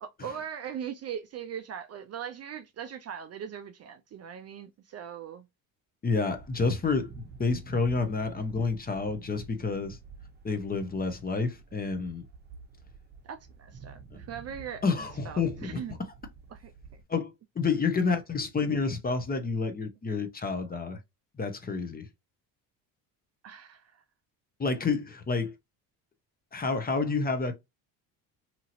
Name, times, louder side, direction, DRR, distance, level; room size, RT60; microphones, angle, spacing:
voice 1, 0.0-5.4 13.2-14.8 15.2-15.9 16.5-16.7 23.4-24.0, right 8 dB, 40° right, 0.4 m, -40 dB
voice 2, 6.0-10.0 10.4-12.2 14.8-15.8 17.1-21.0 21.4-22.1 24.6-25.5 26.5-27.5, left 4 dB, 20° left, 0.6 m, -29 dB
sound 1, 6.3-17.0, right 5 dB, 25° right, 0.9 m, -49 dB
2.9 x 2.7 x 2.5 m
supercardioid pair, 95°, 42 cm